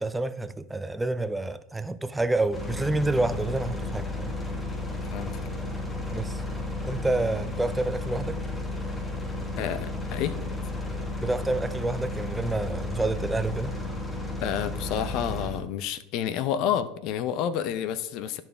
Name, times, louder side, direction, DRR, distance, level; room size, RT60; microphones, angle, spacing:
voice 1, 0.0-4.3 6.1-6.4 6.8-8.4 11.2-13.7, right 2 dB, 10° right, 0.4 m, -28 dB
sound 1, 2.5-15.6, left 2 dB, 15° left, 1.3 m, -33 dB
voice 2, 9.6-10.3 14.4-18.4, left 9 dB, 55° left, 0.6 m, -29 dB
12.0 x 4.4 x 3.4 m
hypercardioid pair, 85°, 0 cm